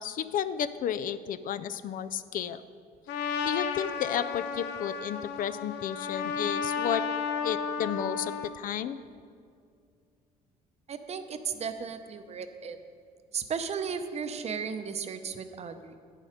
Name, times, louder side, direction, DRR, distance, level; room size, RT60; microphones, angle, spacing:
voice 1, 0.0-2.6 3.5-7.0 7.4-9.0, left 9 dB, 55° left, 13 dB, 0.4 m, -32 dB
Trumpet, 3.1-8.5, left 6 dB, 85° left, 0.7 m, -33 dB
voice 2, 10.9-12.8 13.3-16.0, right 6 dB, 40° right, 9 dB, 0.7 m, -35 dB
9.3 x 7.4 x 5.0 m, 2.2 s
cardioid pair, 110°, 17 cm